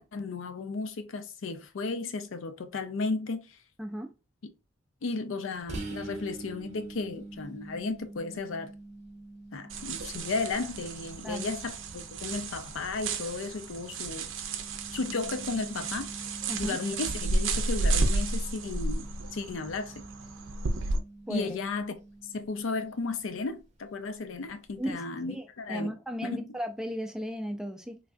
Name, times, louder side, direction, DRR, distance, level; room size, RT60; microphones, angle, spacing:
voice 1, 0.1-3.4 5.0-8.7 9.5-14.3 14.9-16.1 16.6-20.0 21.3-21.9 22.3-25.9 26.3-26.5, left 3 dB, 80° left, 0.5 m, -34 dB
voice 2, 3.8-4.1 11.2-11.5 16.5-16.8 21.3-21.6 24.8-25.0 25.3-28.0, equal, 5° right, 0.3 m, -35 dB
sound 1, 5.7-23.2, right 2 dB, 35° right, 0.6 m, -46 dB
sound 2, 9.7-21.0, right 2 dB, 75° right, 0.5 m, -32 dB
3.2 x 2.3 x 2.4 m
head